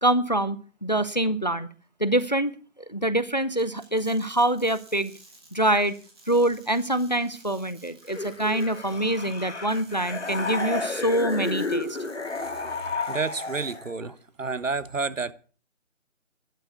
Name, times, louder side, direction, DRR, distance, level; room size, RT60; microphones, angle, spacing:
voice 1, 0.0-1.7 2.0-2.6 2.9-5.1 5.5-6.0 6.3-11.9, right 1 dB, 35° left, 0.5 m, -25 dB
sound 1, 3.6-13.9, right 3 dB, 20° right, 2.6 m, -53 dB
sound 2, 8.1-13.9, left 3 dB, 60° left, 2.0 m, -32 dB
voice 2, 13.1-14.1 14.4-15.3, right 4 dB, 75° right, 1.2 m, -29 dB
11.5 x 8.3 x 8.1 m
figure-of-eight pair, 165°, 39 cm